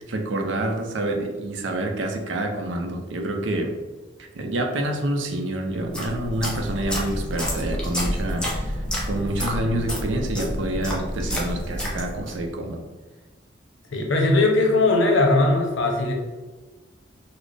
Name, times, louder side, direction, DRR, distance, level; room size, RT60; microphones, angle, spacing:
voice 1, 0.0-3.7 4.2-12.8, right 1 dB, 75° right, 3 dB, 0.5 m, -27 dB
sound 1, 5.7-12.4, equal, 5° left, 0.6 m, -29 dB
voice 2, 13.9-16.1, left 2 dB, 80° left, 1 dB, 0.7 m, -19 dB
4.0 x 2.1 x 3.3 m, 1.3 s
head